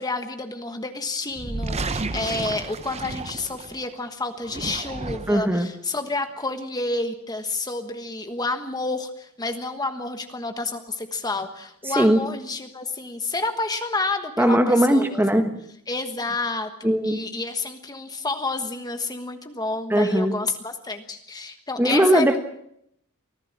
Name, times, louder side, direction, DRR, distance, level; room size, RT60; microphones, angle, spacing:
voice 1, 0.0-15.2 15.9-22.4, left 3 dB, 15° left, 7 dB, 1.3 m, -29 dB
sound 1, 1.3-3.9 4.4-5.5, right 3 dB, 30° right, 0.8 m, -32 dB
voice 2, 5.3-5.7 12.0-12.2 14.4-15.5 16.8-17.2 19.9-20.3 21.8-22.4, right 1 dB, 10° right, 7 dB, 1.5 m, -19 dB
24.5 x 16.0 x 7.4 m, 0.73 s
head